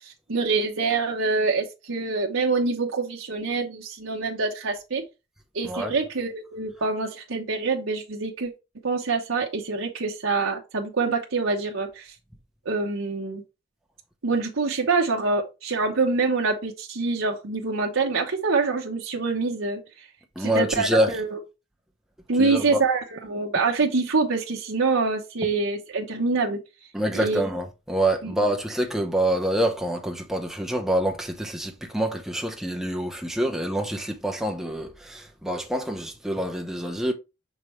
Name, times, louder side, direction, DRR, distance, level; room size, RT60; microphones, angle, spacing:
voice 1, 0.0-5.0 5.5-8.5 8.8-12.1 12.6-13.4 14.2-19.8 20.4-21.4 22.3-26.6 27.1-27.4 28.2-28.3, right 4 dB, 75° right, 1.0 m, -25 dB
voice 2, 20.4-21.1 22.4-22.8 26.9-37.1, right 1 dB, ahead, 0.9 m, -26 dB
6.2 x 5.2 x 3.1 m
head